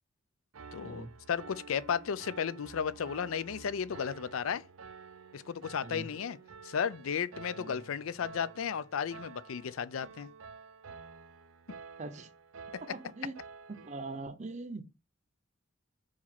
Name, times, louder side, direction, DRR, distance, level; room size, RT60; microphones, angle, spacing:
Piano, 0.5-14.3, right 5 dB, 90° right, 0.6 m, -51 dB
voice 1, 0.7-4.6 5.3-6.4 6.6-10.3, left 7 dB, 85° left, 0.4 m, -34 dB
voice 2, 12.0-12.3 12.8-13.3 13.8-14.8, right 2 dB, 35° right, 0.7 m, -42 dB
4.8 x 4.2 x 5.9 m
head